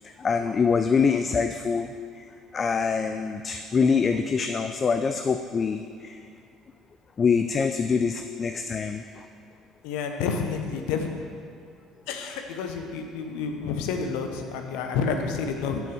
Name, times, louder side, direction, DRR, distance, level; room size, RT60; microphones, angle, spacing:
voice 1, 0.0-6.3 7.2-9.3, left 5 dB, 35° left, 8 dB, 0.4 m, -25 dB
voice 2, 9.8-11.2 12.1-15.8, left 5 dB, 65° left, 4 dB, 0.7 m, -29 dB
6.7 x 6.3 x 7.0 m, 2.2 s
figure-of-eight pair, 55°, 0 cm